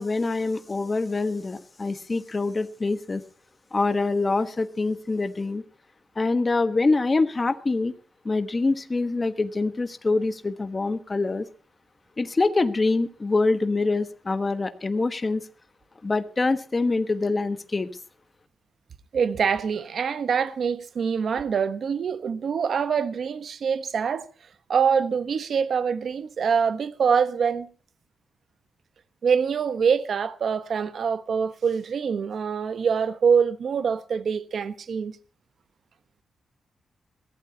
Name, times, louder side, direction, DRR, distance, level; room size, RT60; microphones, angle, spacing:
voice 1, 0.0-3.2 3.7-5.6 6.1-7.9 8.2-11.5 12.2-15.4 16.0-17.9, left 3 dB, 25° left, 1.2 m, -25 dB
voice 2, 19.1-24.2 24.7-27.7 29.2-35.2, right 6 dB, 55° right, 1.1 m, -24 dB
21.5 x 15.5 x 2.9 m
wide cardioid pair, 140°, 0 cm